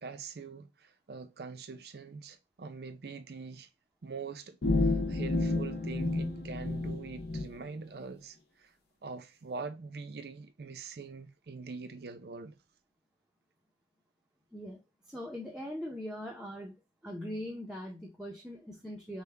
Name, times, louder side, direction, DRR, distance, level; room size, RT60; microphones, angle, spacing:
voice 1, 0.0-3.7 4.0-8.7 9.0-12.6, right 4 dB, 65° right, 0.5 m, -44 dB
sound 1, 4.6-7.5, left 2 dB, 65° left, 0.7 m, -30 dB
voice 2, 15.1-16.7 17.0-19.2, equal, 5° right, 0.6 m, -41 dB
5.5 x 2.2 x 3.3 m
head